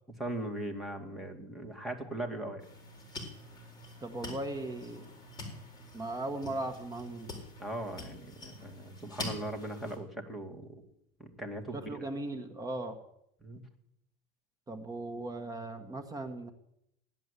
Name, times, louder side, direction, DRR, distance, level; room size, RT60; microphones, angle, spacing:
voice 1, 0.2-2.6 7.6-10.7 11.2-12.0 13.4-13.6, right 1 dB, ahead, 1 dB, 2.2 m, -39 dB
sound 1, 2.6-10.0, left 2 dB, 20° left, 4.1 m, -45 dB
voice 2, 4.0-5.1 5.9-7.3 11.7-13.0 14.7-16.5, right 2 dB, 20° right, 6 dB, 1.4 m, -38 dB
16.0 x 11.0 x 8.3 m, 0.77 s
cardioid pair, 145°, 20 cm